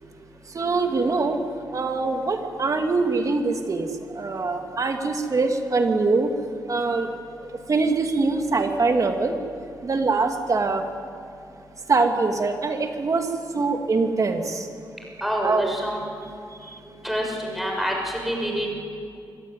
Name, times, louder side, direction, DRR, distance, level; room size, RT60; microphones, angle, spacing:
voice 1, 0.5-1.4 1.7-3.9 4.1-6.3 6.7-7.1 7.7-9.3 9.8-10.8 11.9-13.3 13.5-14.7 15.4-15.7, right 3 dB, 45° right, 5 dB, 2.4 m, -23 dB
voice 2, 15.2-16.0 16.9-18.7, equal, ahead, 0 dB, 6.6 m, -27 dB
24.5 x 15.0 x 9.4 m, 2.5 s
cardioid pair, 70°, 8 cm